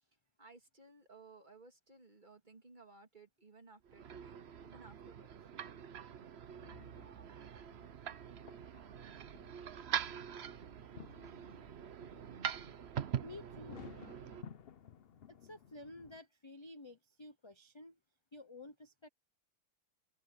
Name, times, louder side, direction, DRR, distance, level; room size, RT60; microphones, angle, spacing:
voice 1, 0.4-4.4 4.6-5.3, right 3 dB, 25° right, 2.5 m, -59 dB
sound 1, 3.8-14.4, right 9 dB, 55° right, 0.8 m, -44 dB
sound 2, 6.5-16.2, left 8 dB, 55° left, 0.6 m, -58 dB
voice 2, 13.2-13.9 15.3-18.0 18.3-19.1, left 2 dB, 25° left, 0.7 m, -52 dB
open air
omnidirectional pair, 1.9 m